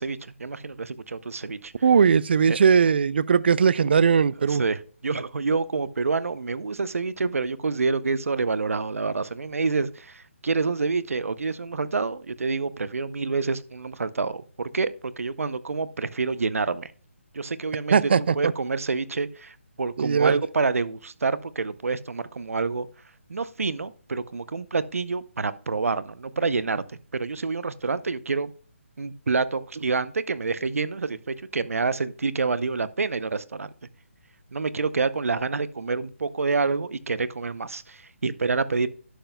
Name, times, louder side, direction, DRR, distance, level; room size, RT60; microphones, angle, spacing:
voice 1, 0.0-1.7 2.5-2.8 4.3-16.9 17.3-22.9 23.3-26.8 27.1-28.5 29.0-33.7 34.5-38.9, right 4 dB, 85° right, 0.6 m, -27 dB
voice 2, 1.8-4.6 17.9-18.5 20.0-20.4, right 6 dB, 50° right, 0.3 m, -19 dB
11.5 x 7.8 x 2.2 m
hypercardioid pair, 165°, 7 cm